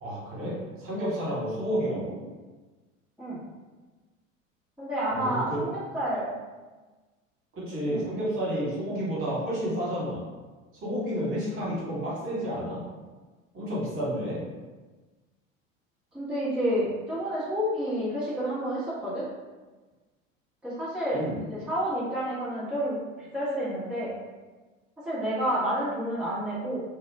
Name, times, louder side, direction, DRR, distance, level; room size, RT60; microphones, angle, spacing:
voice 1, 0.0-2.2 5.1-5.6 7.5-10.2 10.8-12.8 13.5-14.4 21.1-21.4, equal, 30° right, -7 dB, 1.2 m, -30 dB
voice 2, 4.8-6.3 7.8-8.1 16.1-19.2 20.6-24.1 25.0-26.8, equal, ahead, -12 dB, 0.8 m, -30 dB
2.3 x 2.0 x 3.2 m, 1.3 s
figure-of-eight pair, 75°, 40 cm